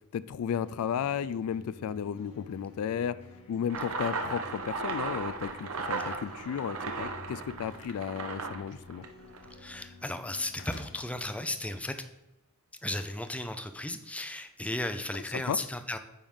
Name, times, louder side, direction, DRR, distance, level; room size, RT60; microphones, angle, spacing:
voice 1, 0.1-3.2 3.5-9.0 15.5-15.6, left 8 dB, 75° left, 18 dB, 0.3 m, -34 dB
sound 1, 0.5-11.7, left 3 dB, 30° left, 1.4 m, -52 dB
sound 2, 3.7-9.5, right 4 dB, 65° right, 0.9 m, -36 dB
sound 3, 6.1-7.0 9.8-9.9 10.3-11.3 12.0-12.1 13.1-13.3, left 5 dB, 55° left, 0.8 m, -54 dB
voice 2, 9.5-12.0 12.8-16.0, left 1 dB, 5° left, 8 dB, 0.5 m, -35 dB
9.5 x 3.6 x 5.5 m, 0.95 s
head